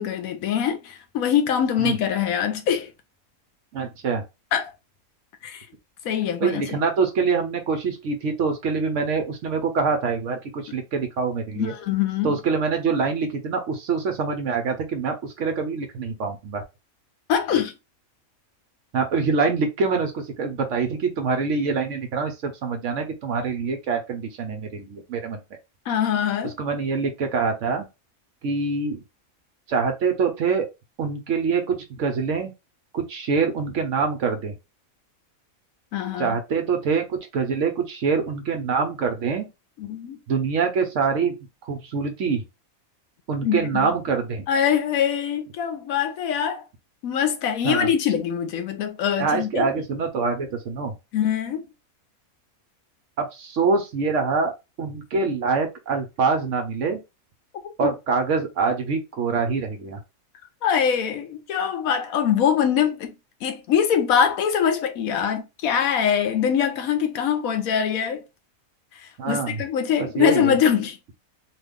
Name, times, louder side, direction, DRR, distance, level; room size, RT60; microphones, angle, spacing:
voice 1, 0.0-2.9 4.5-4.7 5.4-5.7 6.0-6.6 11.6-12.3 17.3-17.7 25.9-26.5 35.9-36.3 39.8-40.2 43.4-43.9 44.5-46.6 47.0-49.7 51.1-51.6 57.8-57.9 60.6-63.1 63.4-68.2 69.3-71.0, left 8 dB, 80° left, 1.1 m, -23 dB
voice 2, 3.7-4.2 6.4-11.7 12.2-16.6 18.9-25.4 26.6-27.9 28.4-29.0 29.7-30.7 31.0-32.5 32.9-34.5 36.2-39.5 40.3-41.3 41.6-42.4 43.3-44.4 47.6-47.9 49.2-50.9 53.2-54.5 54.8-57.0 57.8-60.0 69.2-69.6 70.0-70.5, right 5 dB, 65° right, 1.0 m, -25 dB
3.0 x 2.4 x 3.5 m
omnidirectional pair, 1.5 m